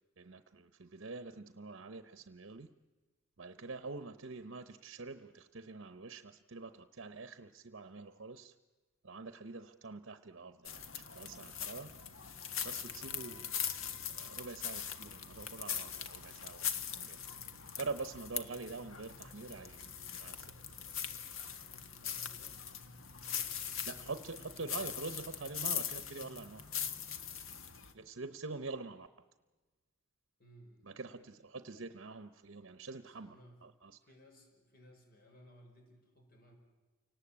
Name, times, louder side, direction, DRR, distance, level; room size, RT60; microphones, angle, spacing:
voice 1, 0.2-2.8 3.4-8.5 9.0-12.0 12.6-13.6 14.1-17.4 17.8-20.5 23.9-26.7 27.9-29.1 30.8-33.4 33.6-34.0, right 3 dB, 65° right, 10 dB, 0.8 m, -45 dB
sound 1, 10.7-27.9, left 8 dB, 80° left, 1.6 m, -41 dB
voice 2, 21.6-22.6 30.4-30.9 33.0-33.6 34.0-36.5, equal, 45° left, 3 dB, 5.6 m, -60 dB
29.5 x 18.5 x 8.7 m, 1.3 s
head